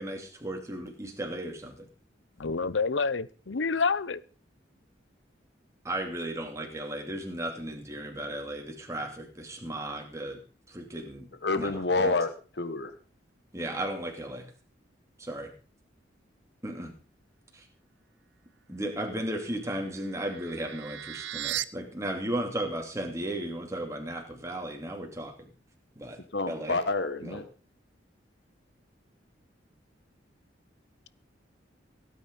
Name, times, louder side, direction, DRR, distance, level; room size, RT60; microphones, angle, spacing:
voice 1, 0.0-1.9 5.8-10.4 10.7-11.3 11.5-11.7 12.0-12.2 13.5-14.5 15.2-15.5 16.6-16.9 17.5-17.7 18.7-25.3 26.0-26.2 26.5-26.8 27.2-27.4, right 1 dB, 15° right, 2 dB, 2.7 m, -35 dB
voice 2, 2.4-4.2, left 4 dB, 90° left, 18 dB, 0.8 m, -28 dB
voice 3, 11.4-12.9 26.3-27.5, left 3 dB, 65° left, 11 dB, 1.2 m, -28 dB
sound 1, 19.4-21.6, right 13 dB, 80° right, 0.7 m, -37 dB
17.0 x 9.1 x 5.4 m, 0.37 s
head